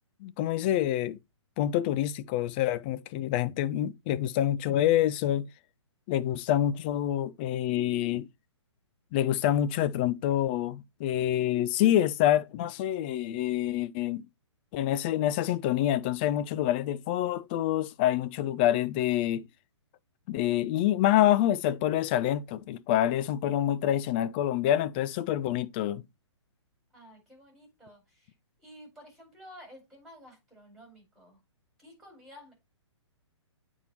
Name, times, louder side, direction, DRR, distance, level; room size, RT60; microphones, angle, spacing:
voice 1, 0.2-1.2 1.6-5.5 6.1-8.3 9.1-14.3 14.7-19.5 20.3-26.0, left 12 dB, 20° left, 0.3 m, -27 dB
voice 2, 26.9-28.3 28.6-31.4 31.8-32.5, equal, ahead, 4.4 m, -52 dB
8.5 x 4.4 x 2.9 m
figure-of-eight pair, 120°, 15 cm